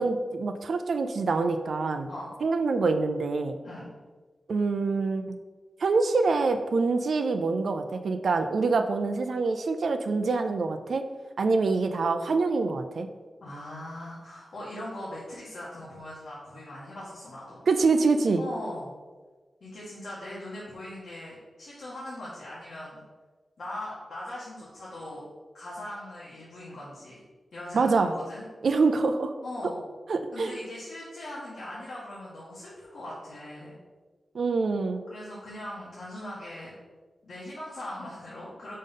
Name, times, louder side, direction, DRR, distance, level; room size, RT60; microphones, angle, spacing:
voice 1, 0.0-2.1 2.4-3.6 4.5-5.2 5.8-11.0 11.4-13.1 17.7-18.4 27.7-28.1 28.6-29.3 30.1-30.6 34.3-35.0, right 4 dB, 70° right, 7 dB, 0.5 m, -25 dB
voice 2, 13.4-17.6 18.4-18.9 19.6-23.0 23.6-25.2 25.5-27.2 27.5-28.5 29.4-29.8 30.3-33.7 35.1-36.7 37.2-38.8, left 1 dB, 70° left, -8 dB, 2.1 m, -40 dB
5.5 x 5.4 x 5.5 m, 1.3 s
wide cardioid pair, 160°, 0 cm